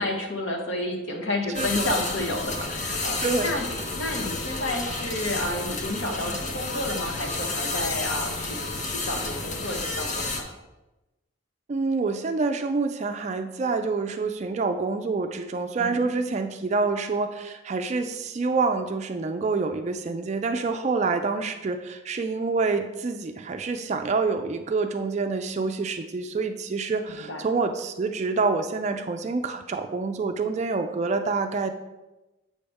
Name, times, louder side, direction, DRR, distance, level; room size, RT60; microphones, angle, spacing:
voice 1, 0.0-3.7 4.0-10.5 15.8-16.1 27.1-27.4, left 1 dB, 70° left, 1 dB, 1.2 m, -31 dB
sound 1, 1.5-10.4, left 3 dB, 40° left, 0.7 m, -31 dB
voice 2, 1.6-2.0 3.2-3.5 11.7-31.7, right 4 dB, 35° right, 7 dB, 0.3 m, -27 dB
7.6 x 5.4 x 3.5 m, 1.0 s
head